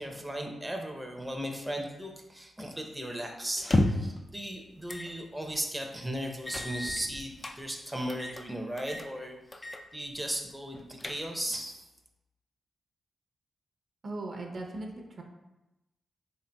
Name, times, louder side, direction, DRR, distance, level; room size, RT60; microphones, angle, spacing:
voice 1, 0.0-11.8, right 1 dB, 10° right, 2 dB, 0.6 m, -37 dB
sound 1, 3.6-4.2 4.9-5.1 5.5-5.6 6.5-7.6 8.1-8.5 8.8-9.1 9.5-9.8 10.2-10.3 10.7-11.5, left 1 dB, 30° left, 0.4 m, -31 dB
voice 2, 14.0-15.2, right 2 dB, 55° right, 2 dB, 0.6 m, -38 dB
3.9 x 3.5 x 2.2 m, 0.98 s
supercardioid pair, 45°, 0 cm